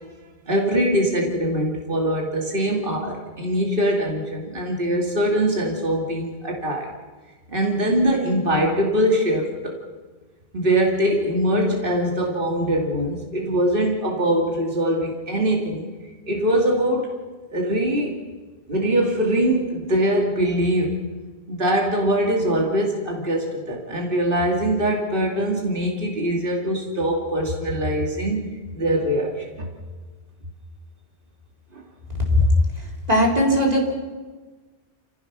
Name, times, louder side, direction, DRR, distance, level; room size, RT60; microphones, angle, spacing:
voice 1, 0.5-6.9 7.5-9.8 10.5-15.9 16.3-17.1 17.5-18.2 18.7-21.0 21.5-29.7 31.7-31.8, right 1 dB, 55° right, 0 dB, 2.7 m, -22 dB
voice 2, 32.8-34.0, left 1 dB, 40° right, -1 dB, 4.0 m, -19 dB
29.5 x 15.5 x 6.1 m, 1.3 s
omnidirectional pair, 1.1 m